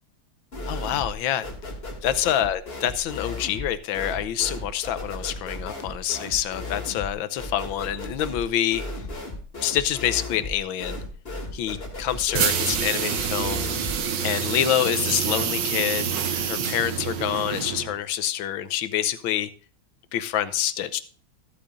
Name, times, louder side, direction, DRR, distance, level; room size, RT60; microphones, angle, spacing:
sound 1, 0.5-1.2 1.4-14.0, left 2 dB, 30° left, 2.5 m, -35 dB
voice 1, 0.6-1.5 2.0-8.8 9.6-11.0 11.5-13.9 14.2-19.5 20.1-21.0, left 11 dB, 75° left, 14 dB, 1.5 m, -27 dB
sound 2, 12.3-18.0, right 8 dB, 65° right, 1.7 m, -27 dB
14.5 x 8.6 x 2.5 m, 0.41 s
omnidirectional pair, 2.2 m